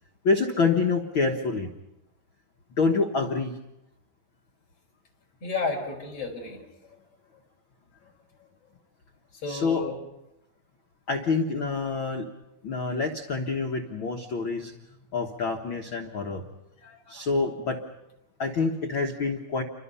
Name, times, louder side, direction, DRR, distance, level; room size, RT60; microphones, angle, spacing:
voice 1, 0.2-1.7 2.8-3.6 9.5-9.8 11.1-12.3 12.6-14.7 15.1-16.4 17.1-17.8 18.4-19.6, left 4 dB, 70° left, 2 dB, 1.2 m, -26 dB
voice 2, 5.4-7.0 8.4-8.5 9.3-10.0 16.8-17.3, left 3 dB, 40° left, 0 dB, 5.8 m, -33 dB
30.0 x 24.0 x 5.6 m, 0.92 s
omnidirectional pair, 4.4 m